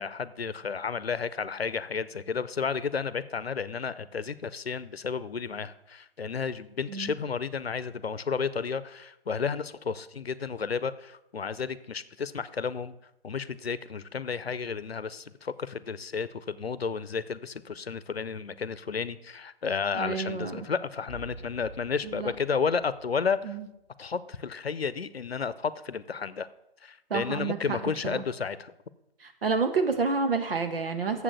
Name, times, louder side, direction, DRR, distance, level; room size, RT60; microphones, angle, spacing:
voice 1, 0.0-12.9 13.2-23.6 24.0-26.5 26.8-28.7, left 5 dB, 85° left, 16 dB, 0.7 m, -32 dB
voice 2, 19.9-20.6 22.0-22.3 23.4-23.6 27.1-27.8 28.0-28.2 29.2-31.2, right 4 dB, 70° right, 7 dB, 1.6 m, -29 dB
sound 1, 21.1-23.9, right 1 dB, 15° right, 2.4 m, -48 dB
7.4 x 6.2 x 7.9 m, 0.88 s
figure-of-eight pair, 140°, 30 cm